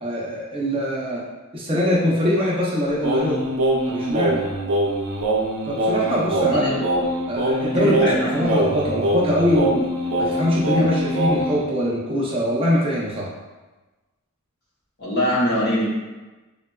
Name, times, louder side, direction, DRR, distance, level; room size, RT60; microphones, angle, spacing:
voice 1, 0.0-1.2 1.5-3.4 3.9-4.4 5.7-6.7 7.3-8.0 8.3-9.9 10.2-13.3, equal, 25° right, -5 dB, 0.5 m, -22 dB
Singing, 3.0-11.6, right 1 dB, 70° right, 0.5 m, -23 dB
voice 2, 6.4-6.8 7.7-8.5 15.0-15.9, equal, 50° left, -6 dB, 0.8 m, -23 dB
3.7 x 2.2 x 2.2 m, 1.2 s
head